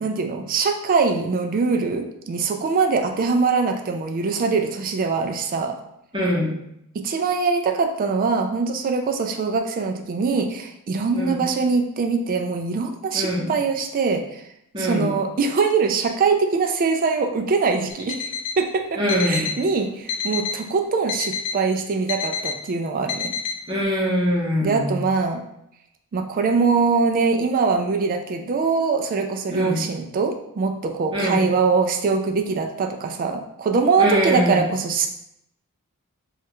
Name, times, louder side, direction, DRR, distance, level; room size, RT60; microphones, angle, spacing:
voice 1, 0.0-5.8 6.9-14.4 14.8-18.3 18.6-23.4 24.6-25.4 26.1-35.1, right 4 dB, 40° right, 5 dB, 0.3 m, -23 dB
voice 2, 6.1-6.5 11.1-11.4 13.1-13.5 14.7-15.1 19.0-19.5 23.7-24.9 29.5-29.8 31.1-31.4 34.0-34.6, equal, 20° right, -6 dB, 0.8 m, -23 dB
Alarm, 17.9-18.6 19.1-19.6 20.1-20.6 21.1-21.6 22.1-22.6 23.1-23.6, left 6 dB, 85° left, 0.4 m, -28 dB
3.1 x 2.4 x 2.9 m, 0.80 s
head